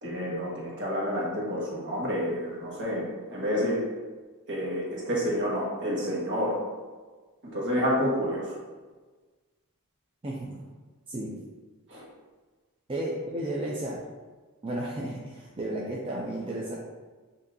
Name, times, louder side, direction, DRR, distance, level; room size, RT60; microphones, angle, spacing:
voice 1, 0.0-3.8 4.5-6.5 7.5-8.6 11.9-12.0, equal, 55° right, -5 dB, 1.4 m, -29 dB
voice 2, 10.2-10.7 11.1-11.4 12.9-14.0 14.6-16.8, right 1 dB, 25° right, -3 dB, 0.4 m, -33 dB
7.3 x 2.7 x 2.7 m, 1.4 s
head